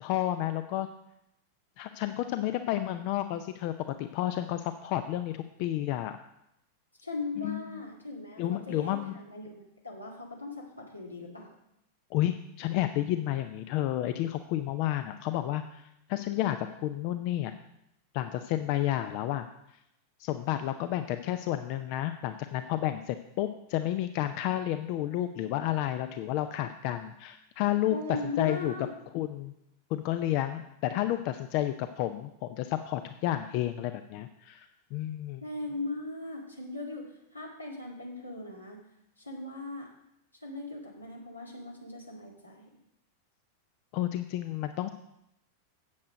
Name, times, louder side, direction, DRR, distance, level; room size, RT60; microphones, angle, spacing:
voice 1, 0.0-0.9 1.8-6.2 7.4-7.7 8.4-9.2 12.1-17.5 18.1-19.5 20.2-28.0 28.4-28.7 29.1-29.5 29.9-35.4 43.9-44.9, left 13 dB, 45° left, 10 dB, 0.5 m, -31 dB
voice 2, 7.0-11.5 27.9-28.9 35.4-38.8 39.2-39.9 40.4-42.6, left 2 dB, 85° left, -1 dB, 2.1 m, -39 dB
8.5 x 7.9 x 5.1 m, 0.80 s
figure-of-eight pair, 90°, 0 cm